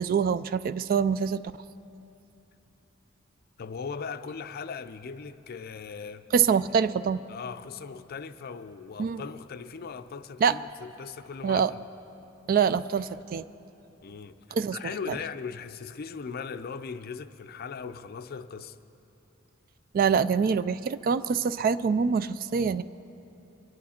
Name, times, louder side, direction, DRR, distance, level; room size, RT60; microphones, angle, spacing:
voice 1, 0.0-1.4 6.3-7.2 9.0-9.2 10.4-10.6 11.4-11.7 12.5-13.4 14.5-14.8 15.1-15.2 19.9-22.8, right 6 dB, 45° right, 0.3 m, -25 dB
voice 2, 3.6-6.3 7.3-11.8 14.0-14.4 14.7-18.8, left 5 dB, 50° left, 0.4 m, -39 dB
23.0 x 11.0 x 4.3 m
head